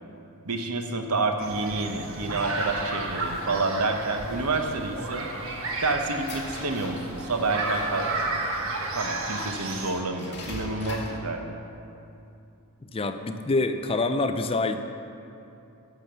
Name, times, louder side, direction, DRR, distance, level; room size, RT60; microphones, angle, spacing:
voice 1, 0.4-5.3 5.8-8.3 8.9-11.6, right 3 dB, 80° right, 5 dB, 1.1 m, -28 dB
sound 1, 1.4-9.9, right 2 dB, 60° right, 1.3 m, -32 dB
sound 2, 5.6-7.7 8.5-8.6 9.2-11.3, left 2 dB, 50° left, 2.2 m, -41 dB
voice 2, 12.8-14.8, left 3 dB, 25° left, 8 dB, 0.5 m, -26 dB
11.5 x 7.1 x 6.9 m, 2.7 s
head